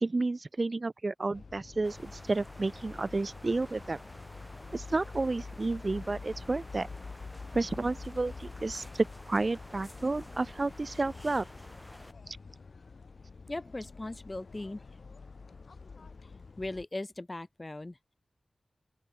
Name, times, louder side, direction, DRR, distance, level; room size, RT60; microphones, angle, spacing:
voice 1, 0.0-4.0 4.7-6.9 7.5-11.5 12.3-12.4, right 3 dB, 45° right, 0.5 m, -31 dB
sound 1, 1.3-16.9, left 4 dB, 65° left, 0.9 m, -47 dB
sound 2, 1.8-12.1, equal, 5° left, 6.5 m, -51 dB
voice 2, 13.5-14.8 16.6-18.1, left 2 dB, 30° left, 0.9 m, -39 dB
open air
wide cardioid pair, 70°, 0 cm